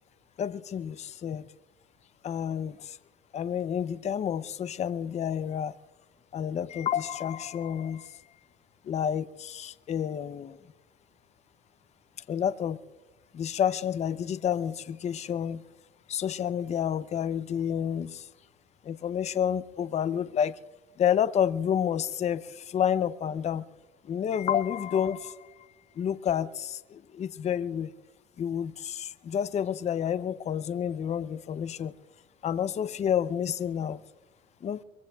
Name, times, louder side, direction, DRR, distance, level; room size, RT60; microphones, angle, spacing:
voice 1, 0.4-1.4 2.2-3.0 3.3-5.7 6.3-8.2 8.8-10.6 12.3-12.8 13.3-15.6 16.1-18.3 18.8-20.6 21.0-23.6 24.0-25.5 26.0-27.9 28.4-31.9 32.4-34.0 34.6-34.8, left 9 dB, 40° left, 0.6 m, -29 dB
23.5 x 23.0 x 2.3 m
cardioid pair, 110°, 17 cm